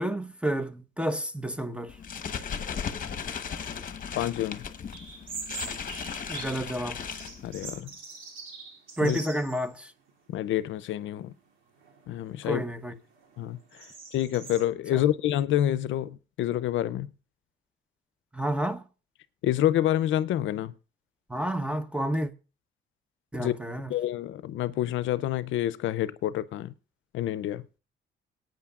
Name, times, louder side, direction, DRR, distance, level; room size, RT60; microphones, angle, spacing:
voice 1, 0.0-2.0 6.3-7.0 9.0-9.9 12.4-12.9 14.9-15.0 18.3-18.8 21.3-22.3 23.3-23.9, right 1 dB, 5° right, 0.9 m, -30 dB
sound 1, 1.9-7.8, left 7 dB, 45° left, 1.0 m, -36 dB
voice 2, 4.2-4.7 7.4-7.9 9.0-9.2 10.3-11.3 12.1-12.6 13.4-13.9 14.1-17.1 19.4-20.7 23.4-23.5 23.9-26.7 27.1-27.6, left 12 dB, 75° left, 0.5 m, -28 dB
sound 2, 4.9-6.7 7.0-9.7 10.1-10.2 10.9-11.3 11.8-14.6, right 4 dB, 80° right, 2.7 m, -43 dB
22.5 x 9.1 x 2.4 m
cardioid pair, 90°, 20 cm